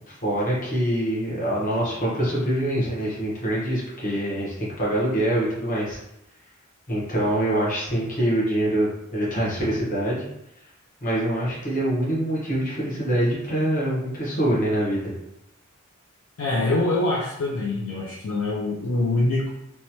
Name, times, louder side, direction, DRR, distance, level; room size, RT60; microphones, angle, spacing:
voice 1, 0.1-6.0 6.9-10.3 11.0-15.1, right 1 dB, 40° left, -6 dB, 1.0 m, -25 dB
voice 2, 16.4-19.5, left 2 dB, 90° left, -5 dB, 0.5 m, -24 dB
3.0 x 2.2 x 2.8 m, 0.81 s
head